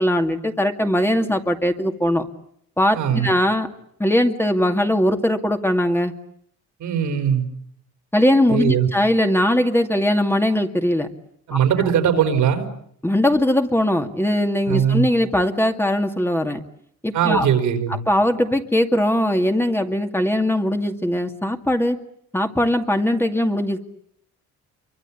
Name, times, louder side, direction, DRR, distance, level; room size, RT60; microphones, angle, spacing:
voice 1, 0.0-2.3 2.8-3.7 4.0-6.1 8.1-11.1 11.5-11.6 13.0-16.6 17.0-17.5 18.1-22.0 22.3-23.8, left 1 dB, 10° left, 4 dB, 2.4 m, -20 dB
voice 2, 2.9-3.3 6.8-7.4 8.5-8.9 11.5-12.7 14.7-15.1 17.1-18.0, right 8 dB, 80° right, 6 dB, 4.6 m, -20 dB
28.5 x 24.5 x 8.6 m, 0.68 s
cardioid pair, 90°, 30 cm